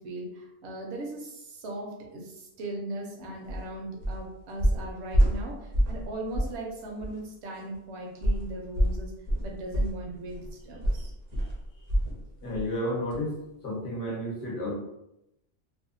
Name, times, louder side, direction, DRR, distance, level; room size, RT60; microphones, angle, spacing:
voice 1, 0.0-9.1 9.4-11.1, right 1 dB, 65° right, 0 dB, 0.9 m, -38 dB
sound 1, 3.5-3.6 4.0-4.3 4.6-6.1 6.3-6.6 7.0-7.1 8.2-12.2 12.5-12.7 13.1-13.2, equal, 45° right, 0.6 m, -27 dB
voice 2, 12.4-13.4 13.6-14.7, left 1 dB, 50° left, -3 dB, 1.0 m, -31 dB
2.7 x 2.2 x 2.5 m, 0.85 s
omnidirectional pair, 1.3 m